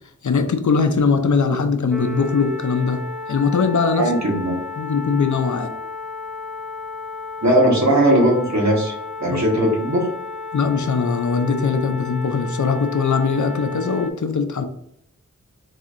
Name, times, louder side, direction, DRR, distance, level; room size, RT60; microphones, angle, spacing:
voice 1, 0.2-3.0 3.3-4.1 4.8-5.7 10.5-14.6, left 5 dB, 70° left, 7 dB, 0.5 m, -20 dB
sound 1, 1.9-14.1, left 3 dB, ahead, 0.4 m, -33 dB
voice 2, 4.0-4.6 7.4-8.9 9.2-10.1, right 1 dB, 60° right, -3 dB, 1.3 m, -18 dB
4.1 x 2.7 x 2.5 m, 0.73 s
wide cardioid pair, 45°, 31 cm